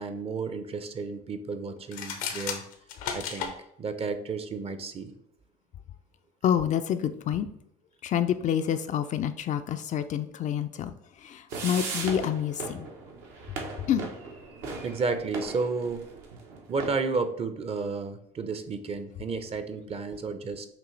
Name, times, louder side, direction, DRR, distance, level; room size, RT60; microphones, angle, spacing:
voice 1, 0.0-2.6 3.1-5.1 14.8-16.1 16.7-20.7, right 4 dB, 35° right, 9 dB, 0.6 m, -32 dB
sound 1, 1.8-3.5, left 7 dB, 85° left, 0.8 m, -34 dB
voice 2, 6.4-7.5 8.0-12.9 13.9-14.1, left 9 dB, 45° left, 9 dB, 0.4 m, -28 dB
sound 2, 11.5-16.9, right 4 dB, 75° right, 1.1 m, -38 dB
6.0 x 2.6 x 3.2 m, 0.75 s
supercardioid pair, 75°, 18 cm